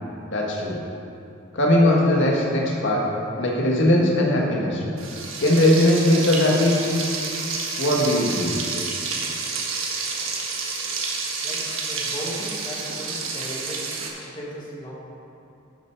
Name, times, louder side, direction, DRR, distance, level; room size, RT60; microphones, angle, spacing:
voice 1, 0.3-0.8 1.5-3.1 3.4-4.8 5.4-6.8 7.8-8.6, left 1 dB, 65° left, -2 dB, 1.8 m, -19 dB
Frying (food), 5.0-14.1, right 4 dB, 85° right, 1.5 m, -29 dB
voice 2, 11.4-14.9, equal, 25° left, -5 dB, 1.8 m, -36 dB
11.5 x 6.8 x 4.7 m, 2.7 s
head